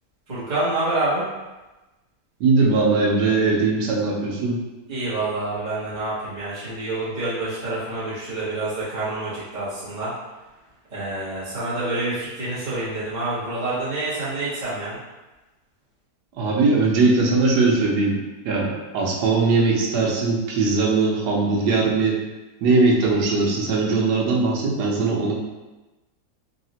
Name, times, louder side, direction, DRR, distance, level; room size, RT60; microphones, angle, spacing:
voice 1, 0.3-1.2 4.9-10.1 10.9-15.0, right 2 dB, 35° right, -11 dB, 0.8 m, -27 dB
voice 2, 2.4-4.6 16.4-18.2 18.4-22.2 22.6-25.3, right 3 dB, 90° right, -2 dB, 1.2 m, -20 dB
3.9 x 2.0 x 2.7 m, 1.1 s
omnidirectional pair, 1.7 m